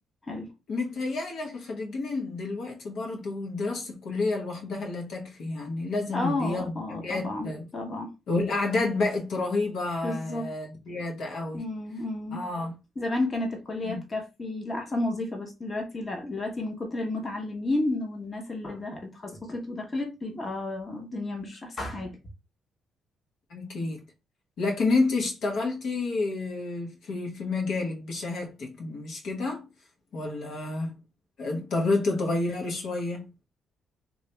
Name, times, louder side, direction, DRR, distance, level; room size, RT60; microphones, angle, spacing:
voice 1, 0.7-7.6 8.3-11.6 12.3-12.7 13.8-14.0 23.5-24.1 24.6-29.7 30.1-30.9 31.4-33.3, left 3 dB, 70° left, 0.9 m, -29 dB
voice 2, 6.1-8.1 10.0-10.5 11.5-12.4 13.0-22.2, left 2 dB, 30° left, 1.0 m, -32 dB
2.9 x 2.4 x 3.2 m
cardioid pair, 90°, 0 cm